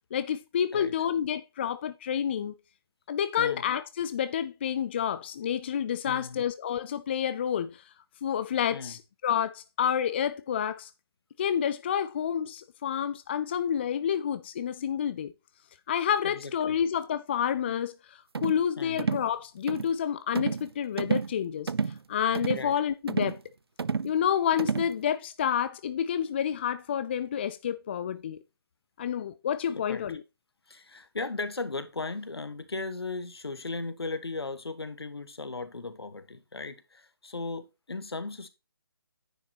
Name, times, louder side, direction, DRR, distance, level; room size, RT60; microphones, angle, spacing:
voice 1, 0.1-2.6 3.1-7.8 8.2-10.9 11.4-15.3 15.9-21.7 22.1-23.4 24.0-28.4 29.0-30.2, left 8 dB, 25° left, 0.4 m, -29 dB
voice 2, 6.0-6.4 8.7-9.0 16.2-16.8 18.8-19.0 22.5-22.7 29.7-30.2 30.7-38.5, left 3 dB, 75° left, 1.4 m, -37 dB
sound 1, 18.3-18.6 19.0-19.3 19.7-19.9 20.4-20.7 21.0-21.3 21.7-22.0 22.3-22.7 23.1-23.4 23.8-24.1 24.6-24.9, right 5 dB, 70° right, 0.5 m, -30 dB
9.9 x 6.4 x 2.9 m
figure-of-eight pair, 150°, 13 cm